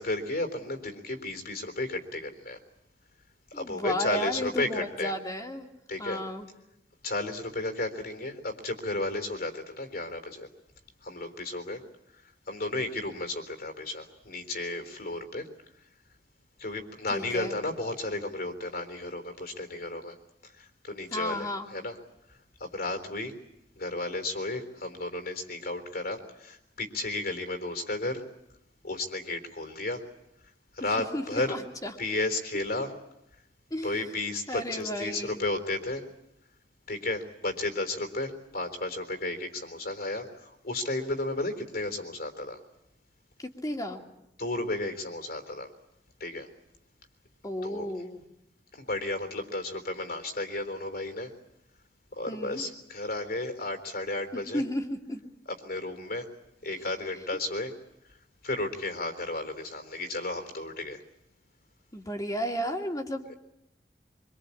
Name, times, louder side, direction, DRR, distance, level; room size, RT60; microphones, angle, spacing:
voice 1, 0.0-2.6 3.5-5.1 5.9-6.2 7.0-10.5 11.0-11.8 12.5-15.5 16.6-20.2 20.4-22.0 22.3-23.3 23.8-28.2 28.8-30.0 30.7-31.6 32.0-32.9 33.8-36.0 36.9-42.6 44.4-45.7 46.2-46.5 47.6-47.9 48.7-51.3 52.2-54.6 55.6-56.3 56.6-57.7 58.4-61.0, left 2 dB, 60° left, 6 dB, 3.8 m, -33 dB
voice 2, 3.5-5.7 6.0-6.5 17.1-17.6 21.1-21.7 30.8-31.9 33.7-34.0 34.5-35.4 43.4-44.0 47.4-48.2 52.3-52.6 54.3-55.2 61.9-63.3, equal, 20° left, 2 dB, 2.8 m, -33 dB
25.0 x 24.5 x 8.6 m, 0.85 s
head